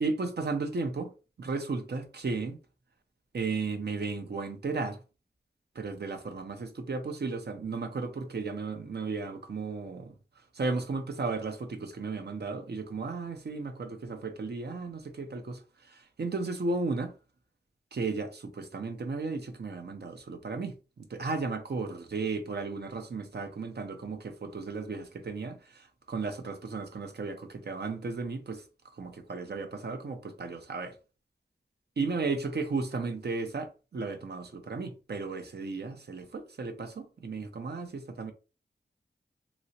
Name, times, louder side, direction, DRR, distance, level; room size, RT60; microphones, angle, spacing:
voice 1, 0.0-1.1 1.4-2.6 3.3-5.0 5.8-10.1 10.6-15.6 16.2-17.1 17.9-20.7 21.1-25.6 26.1-28.6 29.0-30.9 32.0-38.3, right 4 dB, 65° right, 0.8 m, -34 dB
3.1 x 2.9 x 2.8 m
cardioid pair, 45°, 18 cm